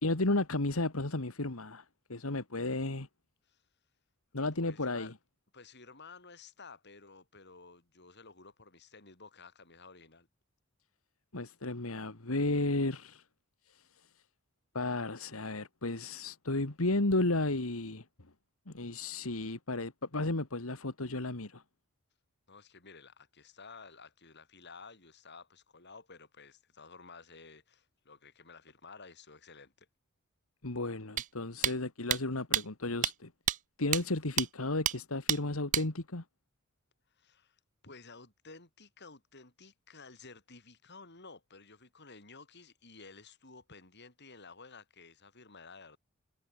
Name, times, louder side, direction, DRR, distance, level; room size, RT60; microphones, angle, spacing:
voice 1, 0.0-3.1 4.3-5.1 11.3-13.2 13.7-14.1 14.7-18.1 18.7-21.6 30.6-33.3 33.8-36.2, left 2 dB, 80° left, 2.1 m, -33 dB
voice 2, 4.6-5.1 5.5-10.3 22.5-29.9 37.1-46.0, left 4 dB, 55° left, 7.4 m, -53 dB
sound 1, 31.2-31.3 31.6-31.7 32.1-32.2 32.5-32.6 33.0-33.1 33.5-33.6 33.9-34.0 34.4-34.5 34.9-35.0 35.3-35.4 35.7-35.8, right 11 dB, 35° right, 0.4 m, -28 dB
head